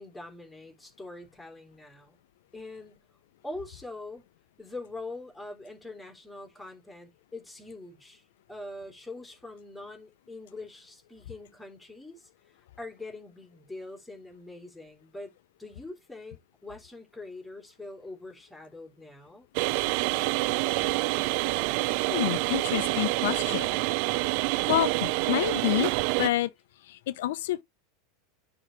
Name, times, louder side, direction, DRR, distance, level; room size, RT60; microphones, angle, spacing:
voice 1, 0.0-2.2 2.5-3.1 3.4-4.2 4.6-8.2 8.5-12.3 12.8-19.5, left 2 dB, 5° left, 3.3 m, -43 dB
sound 1, 19.5-26.3, right 21 dB, 60° right, 0.3 m, -27 dB
voice 2, 22.1-23.7 24.7-25.9 26.2-26.5 26.9-27.6, left 14 dB, 75° left, 0.7 m, -28 dB
9.8 x 3.9 x 3.2 m
hypercardioid pair, 95°, 0 cm